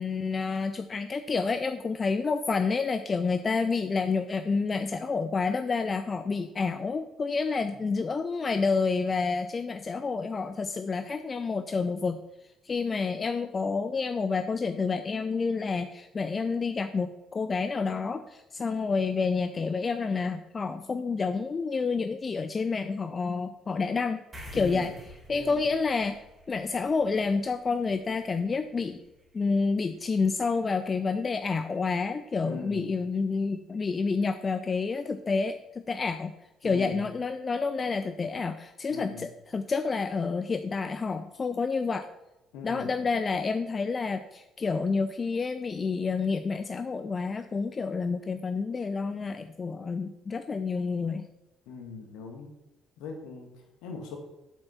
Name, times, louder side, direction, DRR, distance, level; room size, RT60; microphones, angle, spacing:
voice 1, 0.0-24.2 24.5-24.9 25.3-26.2 26.5-29.0 29.3-36.3 36.6-42.1 42.6-51.3, left 4 dB, 30° left, 9 dB, 0.5 m, -29 dB
sound 1, 24.3-31.1, equal, 25° right, 3.4 m, -51 dB
voice 2, 24.5-24.9 25.3-25.7 32.4-32.9 36.6-37.1 38.9-39.3 42.5-42.9 51.7-52.5 53.0-54.2, left 4 dB, 65° left, 3 dB, 1.9 m, -41 dB
7.7 x 7.4 x 5.6 m, 0.95 s
figure-of-eight pair, 50°, 0 cm